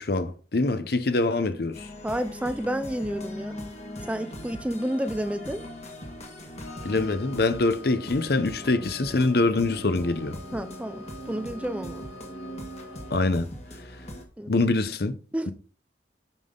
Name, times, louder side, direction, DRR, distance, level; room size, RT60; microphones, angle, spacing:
voice 1, 0.0-1.9 6.8-10.4 13.1-13.5 14.5-15.2, left 2 dB, 55° left, 0.7 m, -24 dB
sound 1, 1.7-14.2, left 1 dB, 35° left, 1.5 m, -40 dB
voice 2, 2.0-3.6 4.1-5.6 10.5-12.1 14.4-14.5 15.3-15.5, equal, 5° right, 0.4 m, -30 dB
Wind instrument woodwind instrument, 6.6-13.4, left 2 dB, 85° left, 1.2 m, -47 dB
9.2 x 5.5 x 3.8 m
head